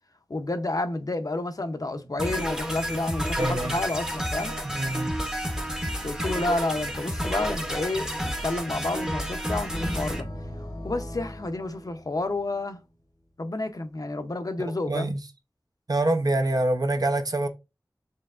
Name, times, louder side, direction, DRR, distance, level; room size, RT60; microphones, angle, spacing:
voice 1, 0.3-4.5 6.0-10.3 10.8-12.8 13.4-15.1, left 2 dB, 55° left, 0.7 m, -30 dB
sound 1, 2.2-10.2, equal, 10° right, 0.8 m, -30 dB
voice 2, 3.4-3.8 4.6-5.1 14.9-15.2 15.9-17.5, right 2 dB, 60° right, 0.7 m, -25 dB
sound 2, 9.7-12.7, left 1 dB, 90° left, 1.4 m, -38 dB
4.5 x 3.2 x 2.4 m
wide cardioid pair, 50°, 7 cm